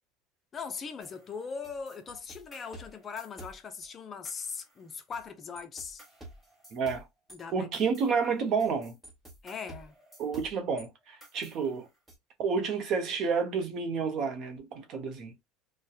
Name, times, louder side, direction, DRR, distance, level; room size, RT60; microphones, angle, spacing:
voice 1, 0.5-6.0 7.3-7.9 9.4-9.9, left 5 dB, 30° left, 0.4 m, -40 dB
sound 1, 1.0-3.9 4.2-5.3 5.6-10.9 11.2-12.2, right 1 dB, 10° right, 1.2 m, -51 dB
voice 2, 6.7-7.1 7.5-8.9 10.2-11.9 12.4-15.3, right 5 dB, 45° right, 0.7 m, -30 dB
2.7 x 2.1 x 2.3 m
supercardioid pair, 130°, 0 cm